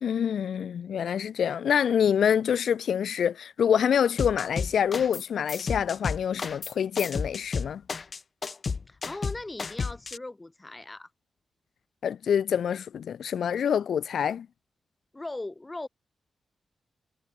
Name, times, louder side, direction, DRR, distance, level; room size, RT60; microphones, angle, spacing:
voice 1, 0.0-7.8 12.0-14.5, left 8 dB, 85° left, 0.4 m, -26 dB
sound 1, 4.2-5.2 5.5-10.2, left 5 dB, 45° left, 0.7 m, -32 dB
voice 2, 8.9-11.1 15.1-15.9, left 2 dB, 20° left, 2.0 m, -39 dB
wide cardioid pair, 110°, 0 cm